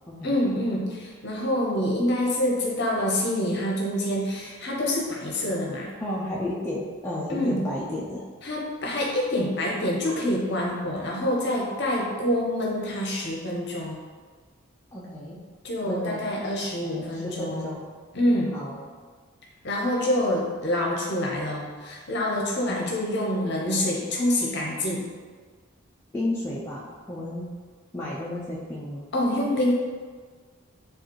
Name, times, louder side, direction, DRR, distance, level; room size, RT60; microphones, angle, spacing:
voice 1, 0.2-5.9 7.3-7.6 8.4-14.0 15.6-17.7 18.1-18.5 19.6-25.1 29.1-29.7, left 1 dB, 50° left, -2 dB, 0.7 m, -26 dB
voice 2, 6.0-8.3 14.9-15.4 15.9-16.2 16.9-17.8 18.5-18.8 22.7-22.9 26.1-26.8 27.1-27.5 27.9-29.1, left 1 dB, 10° left, -6 dB, 0.3 m, -32 dB
4.6 x 2.4 x 3.0 m, 1.5 s
head